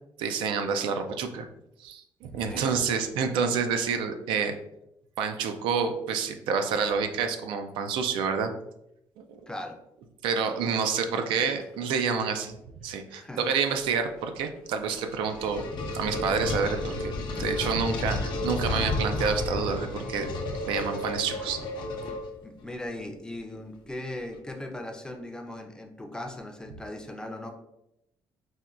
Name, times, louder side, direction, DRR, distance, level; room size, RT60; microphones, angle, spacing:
voice 1, 0.2-1.5 1.8-4.5 5.2-8.5 9.2-9.3 10.2-15.6 15.9-20.3 20.7-21.6, right 6 dB, 90° right, 6 dB, 0.4 m, -28 dB
voice 2, 2.3-2.8 9.5-9.8 13.1-13.4 22.4-27.5, left 1 dB, 10° left, 3 dB, 0.4 m, -38 dB
sound 1, 14.9-22.6, left 2 dB, 65° left, 0.6 m, -32 dB
4.2 x 2.2 x 2.4 m, 0.83 s
cardioid pair, 110°, 8 cm